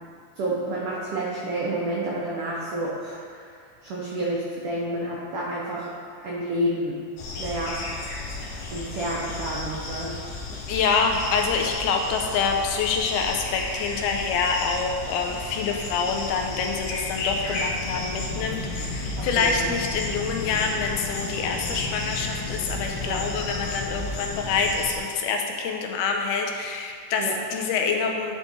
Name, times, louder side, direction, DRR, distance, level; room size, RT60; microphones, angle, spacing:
voice 1, 0.4-3.5 3.8-5.9 6.2-6.9 7.4-7.8 8.7-10.2 19.2-19.8 23.1-23.2 27.2-27.4, right 1 dB, 90° right, -5 dB, 1.2 m, -29 dB
sound 1, 7.2-25.0, left 3 dB, 70° left, 1.6 m, -33 dB
voice 2, 10.5-28.3, left 5 dB, 90° left, 3 dB, 2.2 m, -26 dB
8.8 x 3.6 x 4.0 m, 2.2 s
omnidirectional pair, 3.6 m